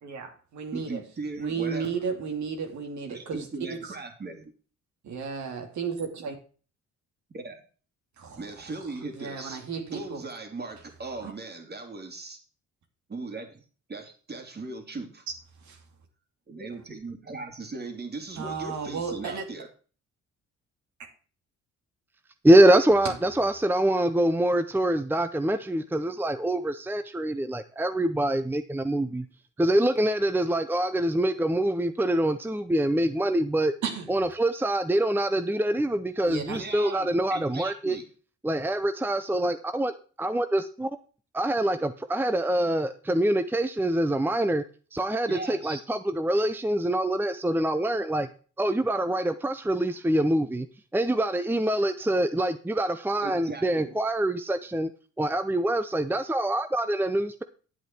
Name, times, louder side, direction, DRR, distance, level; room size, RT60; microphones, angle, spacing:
voice 1, 0.0-1.0 1.4-3.9 5.0-6.4 8.2-8.5 9.1-10.2 11.2-11.3 15.3-15.4 15.6-15.8 18.4-19.4 33.8-34.1 36.3-36.6, right 6 dB, 70° right, 2.8 m, -33 dB
voice 2, 0.7-1.9 3.1-4.5 7.3-7.6 8.4-9.6 9.9-12.4 13.1-13.6 13.9-15.2 16.5-19.7 36.5-38.0 45.3-45.8 53.2-53.9, right 3 dB, 35° right, 2.9 m, -38 dB
voice 3, 22.4-29.2 29.6-33.7 34.1-38.0 38.4-40.9 41.3-44.6 44.9-48.3 48.6-50.7 50.9-54.9 55.2-57.4, right 1 dB, 5° right, 0.7 m, -25 dB
10.5 x 8.0 x 4.5 m
cardioid pair, 90°, 30 cm